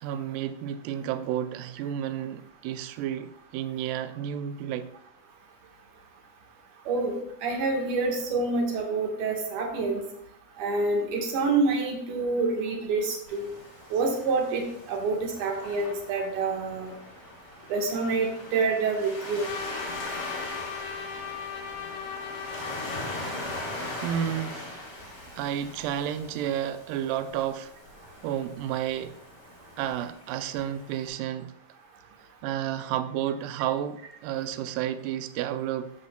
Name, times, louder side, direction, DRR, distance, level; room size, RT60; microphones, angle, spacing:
voice 1, 0.0-4.9 23.2-23.4 23.7-24.7 25.4-27.7 28.2-29.2 29.8-31.5 32.4-35.9, right 10 dB, 80° right, 2.0 m, -31 dB
voice 2, 7.4-10.0 10.6-13.5 13.9-14.6 14.9-16.9 17.7-19.5, right 3 dB, 65° right, 2.8 m, -27 dB
Waves surf, 13.3-31.1, left 1 dB, 35° left, 2.4 m, -41 dB
Trumpet, 19.4-24.1, left 7 dB, 80° left, 1.7 m, -38 dB
14.0 x 6.2 x 2.3 m
omnidirectional pair, 4.2 m